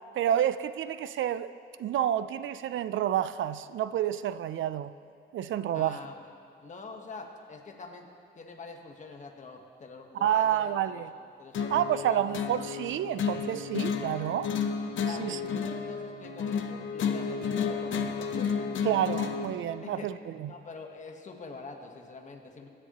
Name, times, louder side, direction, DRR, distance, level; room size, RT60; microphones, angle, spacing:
voice 1, 0.1-1.5 1.8-4.9 5.3-6.0 10.2-11.1 11.7-14.5 15.1-15.4 18.8-20.5, right 11 dB, 80° right, 14 dB, 0.4 m, -29 dB
voice 2, 5.7-6.2 6.6-8.1 8.3-11.0 11.4-12.3 14.5-18.7 19.8-20.1 20.5-22.7, left 4 dB, 40° left, 2 dB, 1.2 m, -45 dB
sound 1, 11.5-19.5, left 6 dB, 85° left, 0.8 m, -32 dB
23.0 x 10.0 x 3.0 m, 2.5 s
wide cardioid pair, 150°, 20 cm